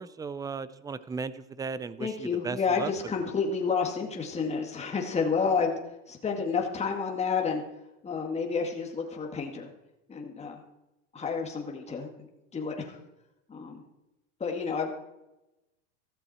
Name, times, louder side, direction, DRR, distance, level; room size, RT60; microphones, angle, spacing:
voice 1, 0.0-2.1 2.4-2.9, right 5 dB, 10° right, 15 dB, 0.5 m, -36 dB
voice 2, 2.0-5.8 6.1-7.6 8.0-9.7 10.1-10.6 11.1-13.0 13.5-13.8 14.4-14.9, left 5 dB, 15° left, 2 dB, 2.1 m, -30 dB
15.0 x 14.0 x 4.4 m, 0.93 s
supercardioid pair, 135°, 38 cm